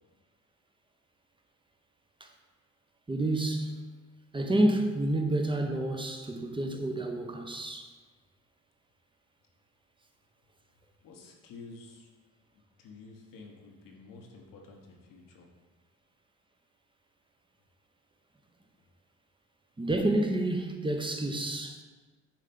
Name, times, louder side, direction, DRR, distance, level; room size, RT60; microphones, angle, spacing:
voice 1, 3.1-3.8 4.3-7.9 19.8-21.8, right 1 dB, 15° right, 0.8 m, -29 dB
voice 2, 11.0-12.1 12.8-15.5, left 3 dB, 80° left, 1.3 m, -50 dB
7.2 x 3.2 x 5.4 m
supercardioid pair, 70°, 33 cm